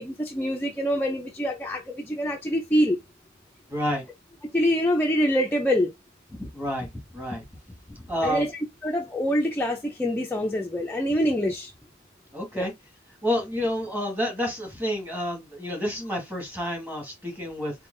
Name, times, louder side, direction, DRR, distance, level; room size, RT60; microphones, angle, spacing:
voice 1, 0.0-3.0 4.5-5.9 8.2-8.5 8.8-11.7 12.5-12.7, equal, 10° left, 0.4 m, -25 dB
voice 2, 3.7-4.0 6.4-6.9 7.1-7.4 8.1-8.4 12.3-12.7 13.2-17.7, equal, 10° right, 1.4 m, -29 dB
4.3 x 2.2 x 3.7 m
head